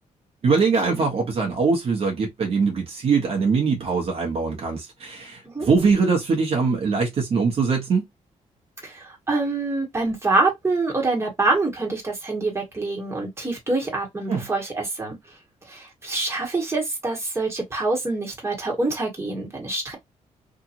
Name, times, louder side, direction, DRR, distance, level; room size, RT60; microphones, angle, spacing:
voice 1, 0.4-8.0 14.3-14.5, right 4 dB, 50° right, 1.0 m, -22 dB
voice 2, 8.8-15.2 15.7-20.0, right 3 dB, 20° right, 1.4 m, -25 dB
2.9 x 2.5 x 2.5 m
cardioid pair, 120°, 13 cm